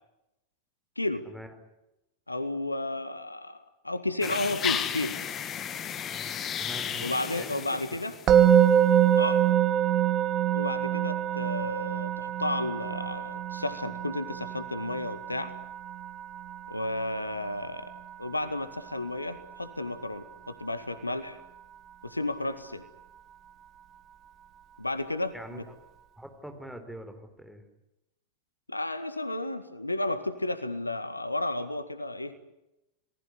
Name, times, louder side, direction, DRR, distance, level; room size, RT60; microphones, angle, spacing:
voice 1, 1.0-1.3 2.3-5.2 7.0-8.2 9.2-9.4 10.5-15.5 16.7-17.9 18.2-21.4 22.0-22.8 24.8-25.6 28.7-32.5, left 2 dB, 85° left, 12 dB, 1.8 m, -32 dB
sound 1, 4.2-8.6, left 8 dB, 30° left, 2.1 m, -34 dB
voice 2, 6.6-7.7 25.3-25.8 26.2-27.6, right 1 dB, ahead, 6 dB, 4.3 m, -44 dB
Musical instrument, 8.3-19.4, right 10 dB, 30° right, 1.9 m, -26 dB
29.0 x 19.5 x 9.7 m, 0.91 s
figure-of-eight pair, 90°, 0 cm